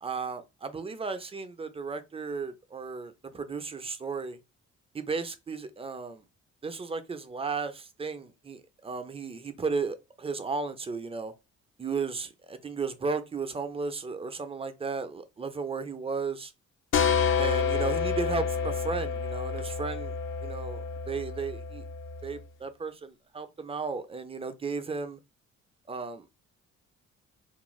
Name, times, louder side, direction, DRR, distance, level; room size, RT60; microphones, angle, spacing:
voice 1, 0.0-4.4 4.9-6.2 6.6-11.3 11.8-16.5 17.4-21.9 22.2-25.2 25.9-26.4, right 4 dB, 20° right, 0.4 m, -34 dB
sound 1, 16.9-22.4, left 6 dB, 45° left, 0.5 m, -29 dB
2.4 x 2.0 x 3.0 m
cardioid pair, 90°, 30 cm